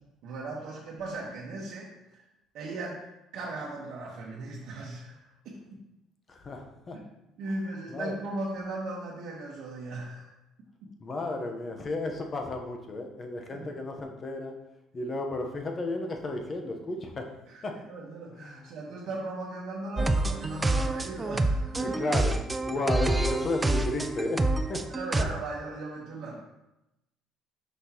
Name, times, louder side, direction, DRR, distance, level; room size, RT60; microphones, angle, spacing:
voice 1, 0.2-2.2 2.5-3.0 3.3-5.8 6.9-7.0 7.4-10.3 13.5-13.7 17.5-22.0 24.9-26.4, right 2 dB, 65° right, -4 dB, 1.1 m, -38 dB
voice 2, 6.3-7.0 7.9-8.1 11.0-14.5 14.9-17.3 17.6-17.8 18.4-18.7 21.8-22.4 22.6-24.8 25.2-25.3, left 2 dB, 30° left, 3 dB, 0.9 m, -33 dB
sound 1, 20.0-25.2, right 2 dB, 15° right, 0.3 m, -27 dB
6.0 x 5.8 x 2.9 m, 0.92 s
cardioid pair, 130°, 0 cm